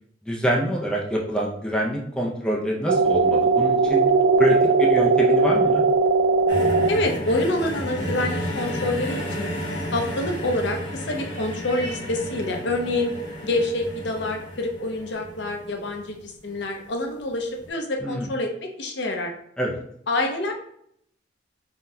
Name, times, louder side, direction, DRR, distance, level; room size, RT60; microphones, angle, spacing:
voice 1, 0.2-4.0 4.4-5.8 18.0-18.3 19.6-19.8, equal, 5° left, -2 dB, 0.4 m, -25 dB
sound 1, 2.9-6.9, right 4 dB, 85° right, 0.3 m, -19 dB
sound 2, 6.5-16.7 17.6-17.7, equal, 80° left, 0.9 m, -32 dB
voice 2, 6.9-9.5 9.9-13.1 13.4-19.3 20.1-20.5, left 2 dB, 65° left, 3 dB, 0.6 m, -27 dB
3.7 x 2.1 x 2.6 m, 0.70 s
head